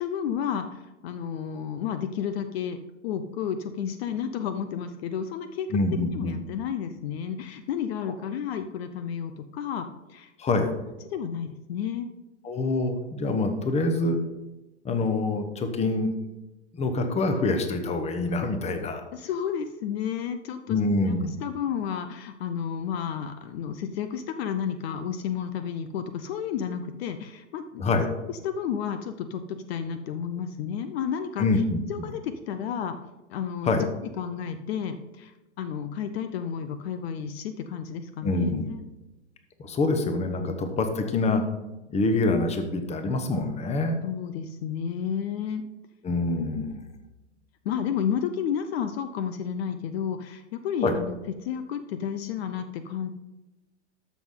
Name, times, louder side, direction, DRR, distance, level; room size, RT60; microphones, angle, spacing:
voice 1, 0.0-2.8 3.0-5.7 6.1-10.3 10.6-10.7 11.1-12.1 19.1-20.8 21.1-27.9 28.3-31.4 31.9-33.0 33.3-33.9 34.2-38.5 44.0-45.7 47.6-51.2 51.4-53.1, left 8 dB, 55° left, 10 dB, 0.8 m, -31 dB
voice 2, 5.7-6.4 10.4-10.7 12.4-14.2 14.8-16.1 16.7-19.0 20.7-21.3 27.8-28.1 31.4-32.1 33.6-33.9 38.2-38.7 39.6-41.4 41.9-44.0 46.0-46.8 50.8-51.0, left 2 dB, 20° left, 7 dB, 1.1 m, -25 dB
13.0 x 6.2 x 3.8 m, 1.0 s
hypercardioid pair, 120°, 36 cm